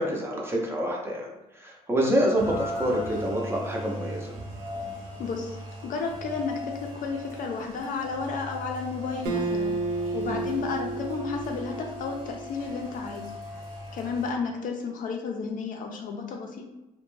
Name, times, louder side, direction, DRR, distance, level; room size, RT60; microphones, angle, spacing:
voice 1, 0.0-4.3 10.3-10.5, equal, 15° right, -2 dB, 0.5 m, -27 dB
Rain, 2.4-14.3, equal, 50° right, 0.9 m, -39 dB
voice 2, 5.2-5.5 5.8-9.8 10.1-13.3 13.9-16.7, left 5 dB, 55° left, 2 dB, 0.4 m, -32 dB
Acoustic guitar, 9.3-12.7, right 3 dB, 80° right, 0.4 m, -32 dB
2.4 x 2.1 x 3.0 m, 0.99 s
cardioid pair, 110°, 17 cm